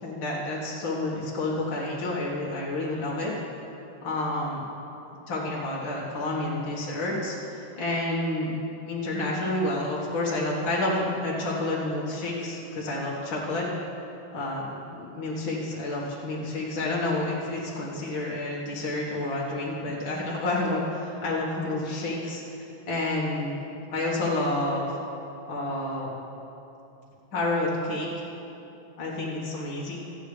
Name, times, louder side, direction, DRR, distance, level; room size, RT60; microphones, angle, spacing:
voice 1, 0.0-3.3 4.0-4.6 5.3-8.5 8.9-13.7 14.3-23.6 23.9-25.0 25.5-26.1 27.3-28.1 29.0-30.0, left 2 dB, 70° left, -6 dB, 2.3 m, -29 dB
25.5 x 9.0 x 3.3 m, 2.9 s
omnidirectional pair, 2.2 m